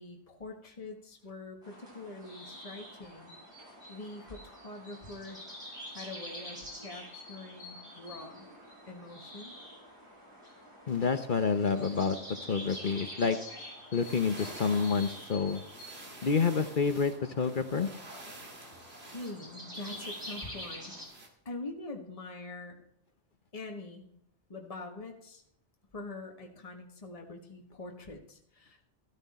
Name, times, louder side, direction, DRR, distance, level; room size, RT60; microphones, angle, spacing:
voice 1, 0.0-3.3 3.9-5.4 5.9-8.5 8.9-9.5 18.7-20.9 21.4-22.8 23.5-24.1 24.5-25.4 25.9-28.9, left 2 dB, 30° left, 2 dB, 1.6 m, -44 dB
sound 1, 1.6-21.0, equal, 25° right, 7.5 m, -47 dB
voice 2, 10.9-12.2 12.5-13.4 13.9-15.6 16.2-17.9, left 5 dB, 50° left, 9 dB, 1.0 m, -28 dB
sound 2, 13.8-21.3, right 1 dB, 60° right, 2.5 m, -49 dB
14.0 x 13.0 x 4.2 m, 0.71 s
omnidirectional pair, 1.2 m